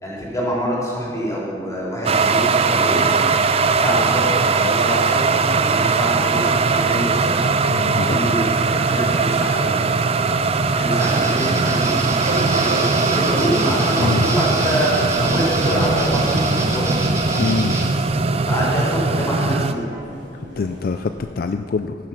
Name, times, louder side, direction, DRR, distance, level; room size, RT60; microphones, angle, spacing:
voice 1, 0.0-3.1 3.7-7.4 7.9-9.8 10.7-12.1 12.5-16.9 18.5-19.9, equal, 20° left, -5 dB, 3.3 m, -25 dB
sound 1, 2.1-19.7, right 4 dB, 35° right, 0.4 m, -20 dB
voice 2, 7.7-8.3 14.0-14.3 17.4-17.8 20.6-22.0, left 4 dB, 55° left, 8 dB, 0.4 m, -24 dB
sound 2, 7.8-21.2, right 1 dB, 80° right, 3.6 m, -35 dB
sound 3, 11.0-17.8, right 1 dB, 15° right, 1.6 m, -26 dB
15.0 x 7.6 x 5.8 m, 2.4 s
head